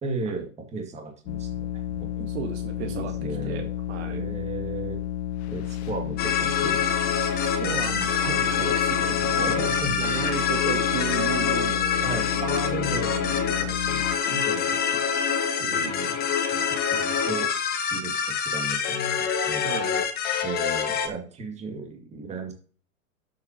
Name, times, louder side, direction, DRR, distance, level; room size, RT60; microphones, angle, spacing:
voice 1, 0.0-2.3 2.8-3.7 4.1-5.0 5.5-7.1 8.6-8.8 9.4-10.0 12.0-15.0 15.7-16.2 16.5-17.5 17.9-19.8 20.4-22.5, right 2 dB, 15° right, 3 dB, 2.1 m, -35 dB
sound 1, 1.3-14.2, left 11 dB, 50° left, 1.1 m, -32 dB
voice 2, 2.3-4.2 7.4-9.6 10.0-13.8 15.6-16.1 19.6-20.0, right 9 dB, 45° right, 5 dB, 1.6 m, -35 dB
sound 2, 6.2-21.1, left 7 dB, 20° left, 1.3 m, -26 dB
12.0 x 7.6 x 2.9 m, 0.41 s
hypercardioid pair, 130°, 44 cm